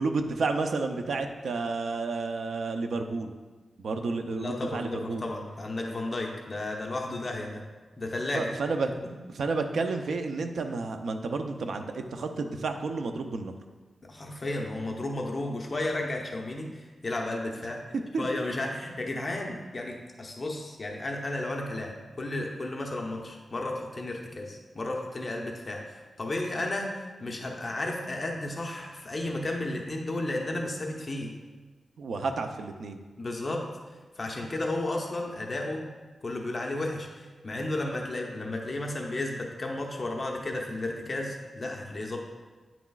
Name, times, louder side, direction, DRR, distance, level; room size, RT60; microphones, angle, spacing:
voice 1, 0.0-3.3 3.8-5.2 8.3-8.9 9.3-13.6 18.1-18.3 32.0-33.0, right 3 dB, 80° right, 6 dB, 0.5 m, -31 dB
voice 2, 4.4-7.6 8.0-8.5 14.0-17.8 18.2-31.3 33.2-33.6 34.2-35.9 36.2-42.2, left 2 dB, 35° left, 0 dB, 0.8 m, -33 dB
9.3 x 6.0 x 2.4 m, 1.3 s
wide cardioid pair, 125°, 0 cm